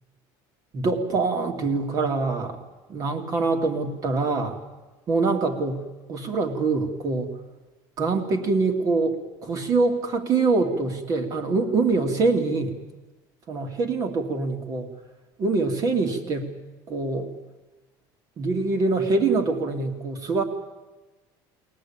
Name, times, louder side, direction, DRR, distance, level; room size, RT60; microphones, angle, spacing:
voice 1, 0.7-2.6 2.9-4.6 5.1-5.8 6.1-7.3 8.0-12.8 13.5-14.9 15.4-16.5 16.9-17.3 18.4-20.4, right 3 dB, 35° right, 5 dB, 2.6 m, -24 dB
22.5 x 19.0 x 8.8 m, 1.2 s
cardioid pair, 150°, 10 cm